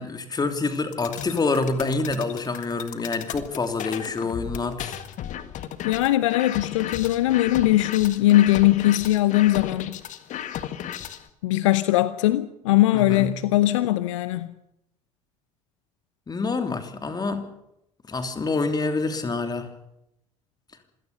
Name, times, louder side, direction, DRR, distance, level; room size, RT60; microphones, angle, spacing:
voice 1, 0.0-5.0 12.9-13.4 16.3-17.5 18.1-19.7, left 3 dB, 25° left, 3.0 m, -27 dB
sound 1, 0.9-11.3, left 10 dB, 45° left, 1.8 m, -35 dB
voice 2, 5.8-9.9 11.4-14.5, left 15 dB, 70° left, 0.8 m, -20 dB
26.5 x 17.0 x 6.9 m
figure-of-eight pair, 60°, 17 cm